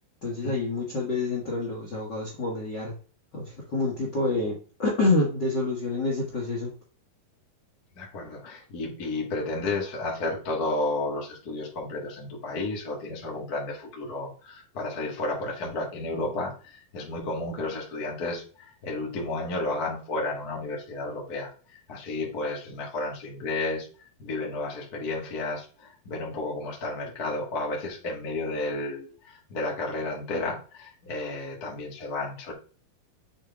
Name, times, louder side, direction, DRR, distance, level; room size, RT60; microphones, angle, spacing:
voice 1, 0.2-2.9 3.3-6.7, left 2 dB, 80° left, 0.9 m, -27 dB
voice 2, 7.9-23.9 24.2-32.5, left 2 dB, 45° left, 1.2 m, -32 dB
8.3 x 3.6 x 3.4 m
omnidirectional pair, 4.5 m